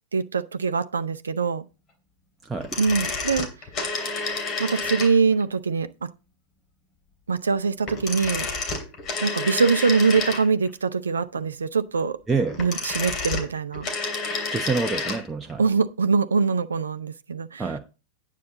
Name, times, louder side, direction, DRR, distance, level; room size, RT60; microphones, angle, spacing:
voice 1, 0.1-1.6 2.8-3.5 4.6-6.1 7.3-8.5 9.2-12.2 12.6-13.9 15.6-17.7, right 5 dB, 70° right, 0.6 m, -23 dB
sound 1, 2.6-5.4 7.8-10.7 12.4-15.2 15.5-15.6, left 3 dB, 30° left, 2.9 m, -30 dB
voice 2, 14.5-15.6 17.6-17.8, right 4 dB, 15° right, 0.9 m, -26 dB
9.6 x 8.4 x 3.9 m
figure-of-eight pair, 90°, 0 cm